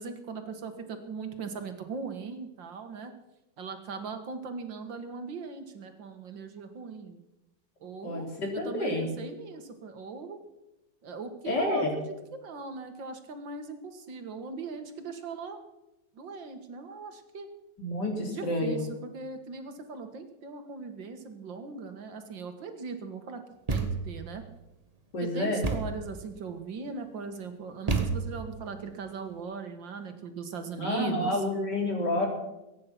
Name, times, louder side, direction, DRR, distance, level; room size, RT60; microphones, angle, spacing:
voice 1, 0.0-3.1 3.6-7.2 7.8-10.4 11.0-15.6 16.2-17.5 18.1-23.4 23.7-24.4 25.2-31.4, right 5 dB, 80° right, 7 dB, 2.4 m, -39 dB
voice 2, 8.0-9.0 11.4-11.9 17.8-18.9 25.1-25.6 30.8-32.3, left 1 dB, 65° left, 0 dB, 4.3 m, -29 dB
Thump thud, 23.7-24.2 25.6-26.1 27.9-28.5, right 4 dB, 20° right, 1.5 m, -30 dB
22.5 x 9.7 x 6.0 m, 0.94 s
omnidirectional pair, 2.0 m